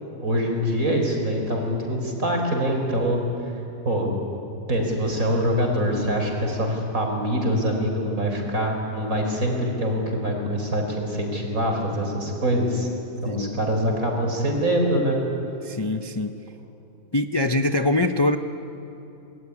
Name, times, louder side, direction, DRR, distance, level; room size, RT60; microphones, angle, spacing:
voice 1, 0.2-3.5 3.8-4.1 4.7-12.9 13.2-15.2, equal, 70° right, 2 dB, 4.9 m, -24 dB
voice 2, 13.2-13.6 15.6-16.3 17.1-18.4, left 2 dB, 25° left, 6 dB, 0.5 m, -23 dB
24.5 x 21.0 x 9.7 m, 3.0 s
omnidirectional pair, 1.5 m